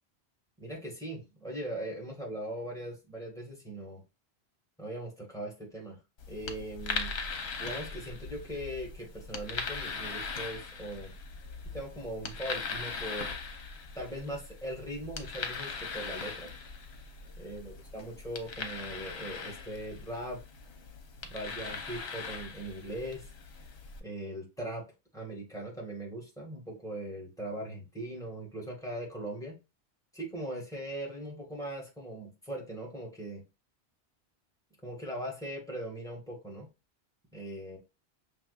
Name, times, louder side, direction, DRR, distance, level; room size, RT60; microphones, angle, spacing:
voice 1, 0.6-4.0 4.8-6.0 6.3-7.1 7.6-11.1 11.7-13.3 14.0-16.5 17.4-20.4 21.2-23.3 24.0-24.8 25.1-29.6 30.1-33.4 34.8-36.7 37.3-37.8, right 1 dB, 5° left, -2 dB, 1.7 m, -40 dB
sound 1, 6.2-24.0, left 5 dB, 70° left, 1.1 m, -40 dB
5.9 x 3.2 x 2.3 m, 0.27 s
omnidirectional pair, 1.1 m